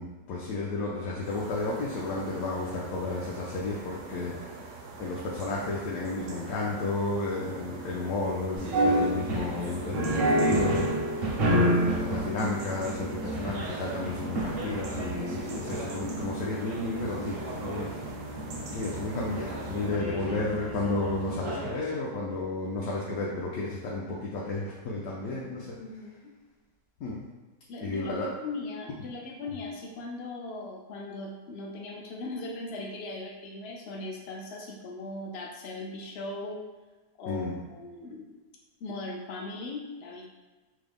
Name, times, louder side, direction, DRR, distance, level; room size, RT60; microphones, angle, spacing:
voice 1, 0.0-10.9 11.5-17.9 18.7-25.8 27.0-27.3 27.8-28.3 37.3-37.6, left 2 dB, 70° left, -5 dB, 1.0 m, -32 dB
sound 1, 1.2-20.0, right 4 dB, 80° right, 1.1 m, -44 dB
sound 2, 8.6-21.8, right 1 dB, 60° right, 0.6 m, -30 dB
voice 2, 25.8-26.4 27.7-36.6 37.2-38.3 38.8-40.2, left 2 dB, 85° left, -1 dB, 0.5 m, -39 dB
3.6 x 2.0 x 3.4 m, 1.2 s
omnidirectional pair, 1.7 m